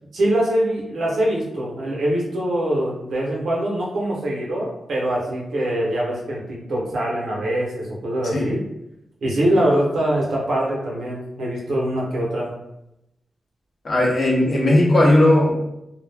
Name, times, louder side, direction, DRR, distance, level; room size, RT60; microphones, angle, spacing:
voice 1, 0.1-8.6 9.2-12.5, right 1 dB, 85° right, -4 dB, 0.9 m, -23 dB
voice 2, 13.8-15.5, left 1 dB, 45° left, -3 dB, 0.7 m, -16 dB
2.4 x 2.1 x 3.3 m, 0.86 s
wide cardioid pair, 145°, 0 cm